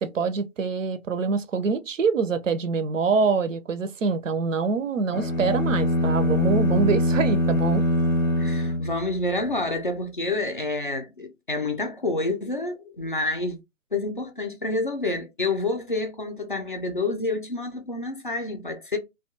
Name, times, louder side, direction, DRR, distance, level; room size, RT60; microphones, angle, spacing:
voice 1, 0.0-7.8, right 4 dB, 70° right, 0.5 m, -25 dB
sound 1, 5.1-9.5, equal, 90° left, 0.7 m, -23 dB
voice 2, 8.4-13.6 13.9-19.0, left 2 dB, 40° left, 0.4 m, -28 dB
2.3 x 2.2 x 2.7 m
figure-of-eight pair, 145°, 39 cm